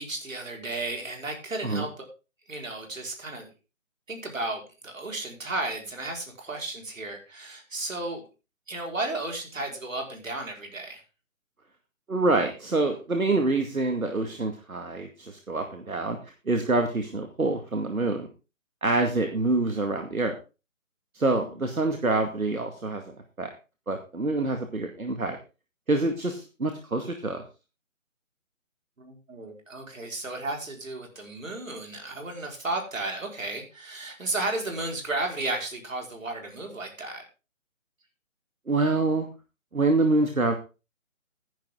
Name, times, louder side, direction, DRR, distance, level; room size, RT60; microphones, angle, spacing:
voice 1, 0.0-2.0 2.5-3.5 4.1-8.2 8.7-11.0 21.4-21.5 29.0-37.2, right 2 dB, 70° right, 2 dB, 5.3 m, -33 dB
voice 2, 12.1-16.2 16.5-18.3 18.8-20.3 21.1-23.5 23.9-25.4 25.9-27.4 38.7-39.3 39.7-40.5, right 2 dB, 85° right, 5 dB, 2.3 m, -26 dB
14.5 x 10.5 x 3.9 m, 0.32 s
figure-of-eight pair, 150°, 41 cm